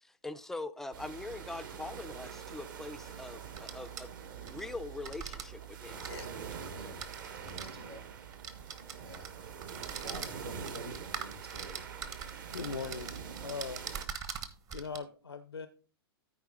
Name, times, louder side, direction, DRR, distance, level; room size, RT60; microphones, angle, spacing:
voice 1, 0.0-4.2 4.4-6.1, left 2 dB, 5° left, 0.5 m, -43 dB
sound 1, 0.9-14.1, right 7 dB, 50° right, 1.7 m, -45 dB
sound 2, 2.0-2.1 3.4-4.6 5.0-5.4 5.9-7.7 8.3-9.3 9.6-15.0, right 7 dB, 25° right, 1.0 m, -43 dB
voice 2, 6.5-7.1 7.3-8.1 9.0-9.7 10.0-11.8, equal, 80° right, 2.4 m, -48 dB
voice 3, 12.5-13.1 13.4-13.8 14.7-15.7, left 5 dB, 80° left, 0.6 m, -40 dB
13.5 x 4.7 x 3.9 m
figure-of-eight pair, 110°, 13 cm